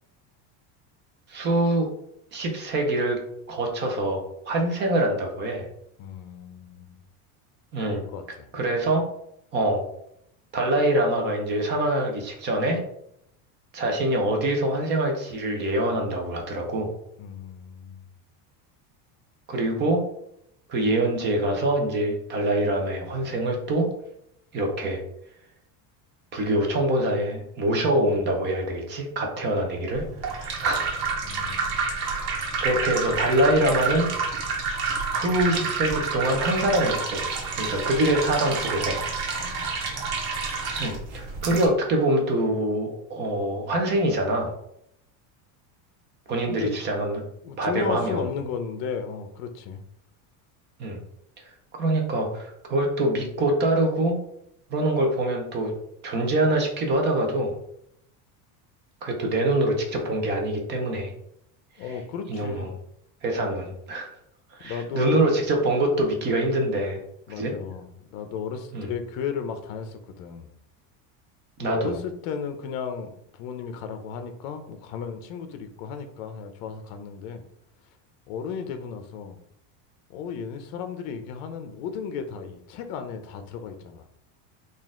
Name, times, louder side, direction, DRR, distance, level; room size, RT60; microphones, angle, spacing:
voice 1, 1.3-1.9 2.3-3.2 3.5-5.7 7.7-8.0 8.5-9.1 9.5-9.8 10.5-12.8 13.7-16.9 19.5-20.0 20.7-23.9 24.5-25.0 26.3-31.1 31.9-34.1 35.1-37.3 37.5-39.0 40.8-44.5 46.3-47.2 47.6-48.3 50.8-51.0 51.7-54.2 54.7-55.7 56.0-57.5 59.0-61.1 61.9-62.0 62.3-62.7 63.2-64.1 64.5-67.0 67.4-67.5 68.7-68.9 71.6-71.9, right 1 dB, 25° right, 2 dB, 0.5 m, -25 dB
voice 2, 6.0-7.0 8.1-8.5 17.2-18.0 31.2-31.9 39.4-39.8 46.5-46.7 47.4-49.8 61.8-62.7 64.6-65.3 67.3-70.5 71.6-77.4 78.3-79.4 80.1-84.0, left 6 dB, 60° left, 8 dB, 0.7 m, -34 dB
sound 1, 29.9-41.7, right 4 dB, 75° right, 1.3 m, -29 dB
4.1 x 2.5 x 3.6 m, 0.74 s
cardioid pair, 175°, 47 cm